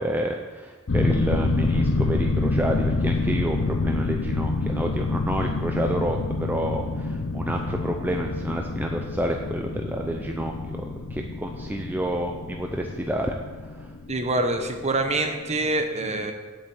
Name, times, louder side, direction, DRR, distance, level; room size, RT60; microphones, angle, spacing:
voice 1, 0.0-13.9, right 1 dB, 10° right, 2 dB, 0.5 m, -29 dB
sound 1, 0.9-15.4 15.7-15.8, left 3 dB, 60° left, 0.8 m, -27 dB
voice 2, 14.1-16.3, right 2 dB, 30° right, 5 dB, 1.0 m, -25 dB
7.9 x 7.0 x 7.9 m, 1.4 s
head